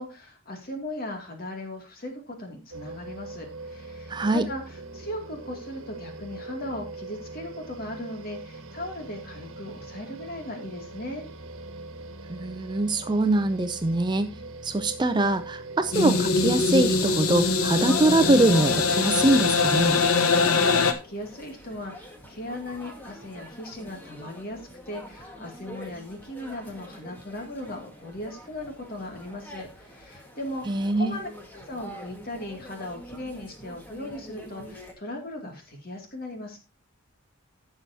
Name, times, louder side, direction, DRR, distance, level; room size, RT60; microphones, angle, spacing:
voice 1, 0.0-11.3 20.1-31.3 31.7-36.6, left 1 dB, 45° left, 3 dB, 2.4 m, -38 dB
sound 1, 2.7-20.2, right 2 dB, 70° right, 1.5 m, -42 dB
voice 2, 4.1-4.5 12.3-14.3 14.6-20.0 30.7-31.2, right 2 dB, 20° right, 9 dB, 0.5 m, -23 dB
sound 2, 15.9-20.9, left 4 dB, 90° left, 1.1 m, -23 dB
sound 3, 17.6-34.9, equal, 10° left, 1.6 m, -44 dB
15.0 x 6.2 x 2.8 m, 0.29 s
head